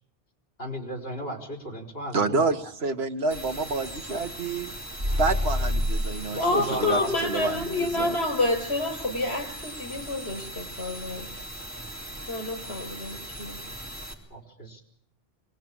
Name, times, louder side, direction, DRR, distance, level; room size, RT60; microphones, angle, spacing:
voice 1, 0.6-2.7 6.3-7.1 14.3-14.8, equal, 65° left, 3 dB, 4.6 m, -35 dB
voice 2, 2.1-4.7 5.2-8.2, right 3 dB, 80° right, 8 dB, 1.5 m, -28 dB
sound 1, 3.3-14.1, right 1 dB, 15° right, 3.8 m, -40 dB
sound 2, 5.0-6.2, left 1 dB, 40° right, 3.6 m, -26 dB
voice 3, 6.4-11.3 12.3-13.6, left 2 dB, 85° left, 4 dB, 5.7 m, -28 dB
25.0 x 19.0 x 8.7 m, 0.68 s
omnidirectional pair, 1.0 m